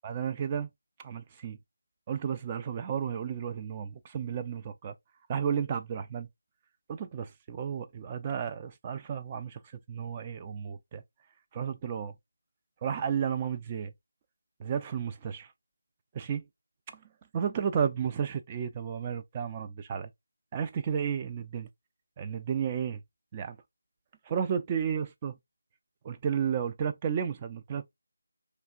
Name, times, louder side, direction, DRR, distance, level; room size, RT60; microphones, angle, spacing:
voice 1, 0.0-0.7 1.0-1.6 2.1-4.9 5.3-6.3 6.9-9.6 9.9-11.0 11.5-12.1 12.8-13.9 14.6-15.5 16.1-16.4 16.9-17.0 17.3-20.1 20.5-21.7 22.2-23.0 23.3-23.6 24.3-25.4 26.0-27.9, right 7 dB, 20° right, 0.3 m, -32 dB
3.3 x 2.8 x 2.4 m
figure-of-eight pair, 165°, 0 cm